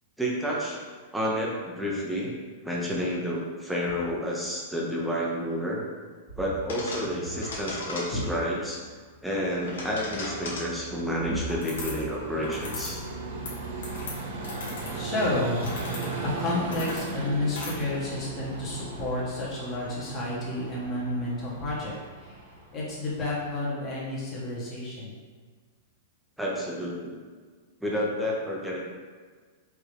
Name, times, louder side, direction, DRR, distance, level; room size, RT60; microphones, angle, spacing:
voice 1, 0.2-0.8 1.1-2.3 2.6-5.8 6.4-8.8 9.2-13.0 26.4-27.1 27.8-28.8, equal, 5° right, -4 dB, 0.8 m, -30 dB
sound 1, 6.7-8.5 9.3-10.8 11.5-12.1 12.4-13.0 13.3-17.7, left 2 dB, 90° left, 1.3 m, -38 dB
Vehicle, 9.2-23.9, right 3 dB, 65° right, 0.7 m, -38 dB
voice 2, 14.9-15.7 16.2-22.4 22.7-25.1, left 1 dB, 25° left, -6 dB, 1.4 m, -30 dB
4.7 x 2.8 x 3.4 m, 1.5 s
hypercardioid pair, 140°, 0 cm